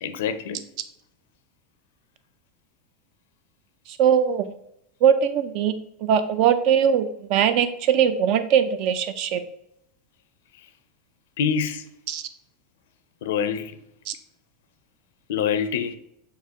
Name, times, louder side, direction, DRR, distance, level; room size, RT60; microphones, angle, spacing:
voice 1, 0.0-0.6 11.4-11.8 13.2-13.7 15.3-16.0, left 7 dB, 80° left, 0.4 m, -25 dB
voice 2, 3.9-4.5 5.0-5.7 6.0-9.4 12.1-12.2 14.1-14.2, right 8 dB, 55° right, 0.4 m, -21 dB
6.5 x 2.5 x 2.8 m
supercardioid pair, 130°, 0 cm